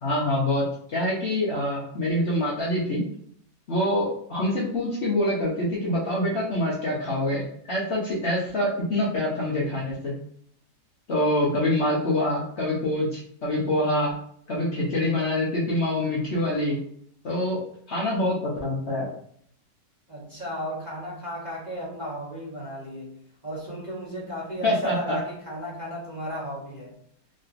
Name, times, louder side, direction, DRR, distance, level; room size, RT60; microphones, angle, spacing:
voice 1, 0.0-3.0 3.7-10.1 11.1-14.2 14.5-16.8 17.2-17.6 17.9-19.1 24.6-25.2, left 1 dB, 55° left, -6 dB, 0.8 m, -25 dB
voice 2, 20.1-23.1 23.4-26.9, equal, 35° right, -7 dB, 0.8 m, -34 dB
3.2 x 2.8 x 2.5 m, 0.64 s
omnidirectional pair, 1.9 m